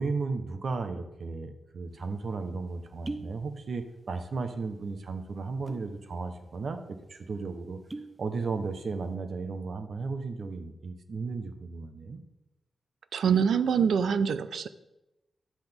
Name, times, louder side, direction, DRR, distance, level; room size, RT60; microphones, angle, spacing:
voice 1, 0.0-7.8 8.2-12.2, right 4 dB, 55° right, 8 dB, 1.0 m, -35 dB
sound 1, 2.0-2.1 2.8-3.4 3.7-4.3 4.6-4.8 5.5-5.9 6.4-6.5 6.8-7.0 7.6-8.2 8.6-9.0, right 2 dB, 20° right, 0.8 m, -40 dB
voice 2, 13.1-14.7, right 7 dB, 80° right, 13 dB, 0.5 m, -25 dB
10.0 x 7.9 x 3.6 m, 0.95 s
cardioid pair, 95°, 0 cm